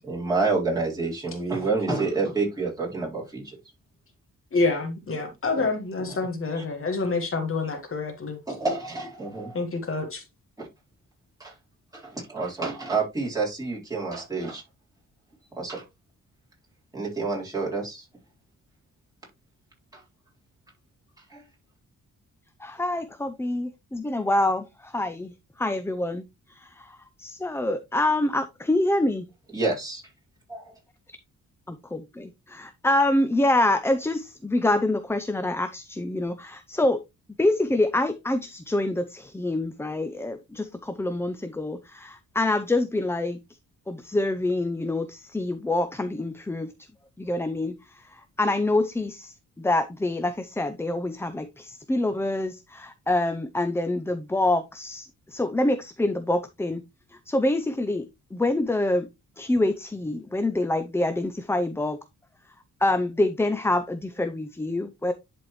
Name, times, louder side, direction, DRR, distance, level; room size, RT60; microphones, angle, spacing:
voice 1, 0.0-3.6 5.5-5.7 6.5-6.6 8.5-9.6 10.6-10.7 11.4-11.6 11.9-14.6 15.5-15.8 16.9-18.1 19.9-20.0 21.2-21.5 29.5-30.0 30.5-30.7, right 3 dB, 10° right, 4.1 m, -28 dB
voice 2, 4.5-8.4 9.5-10.2, left 3 dB, 40° left, 1.6 m, -27 dB
voice 3, 22.6-25.3 25.6-29.3 31.7-37.0 37.4-43.4 43.9-46.7 47.2-56.8 57.3-59.1 59.4-62.0 62.8-65.1, left 2 dB, 10° left, 0.5 m, -26 dB
11.0 x 4.3 x 3.1 m
wide cardioid pair, 140°, 32 cm